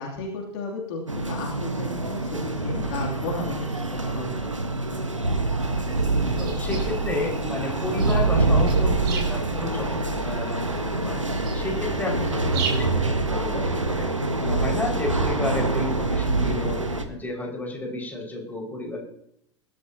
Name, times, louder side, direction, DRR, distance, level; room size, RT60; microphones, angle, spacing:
voice 1, 0.0-4.3, left 3 dB, 55° left, 0 dB, 3.0 m, -34 dB
sound 1, 1.1-17.0, right 2 dB, 90° right, 1.4 m, -25 dB
sound 2, 5.6-12.8, right 5 dB, 55° right, 5.8 m, -38 dB
voice 2, 6.4-11.2 11.5-14.1 14.4-19.0, left 2 dB, 10° left, -1 dB, 5.7 m, -32 dB
21.0 x 12.5 x 2.9 m, 0.72 s
figure-of-eight pair, 85°, 16 cm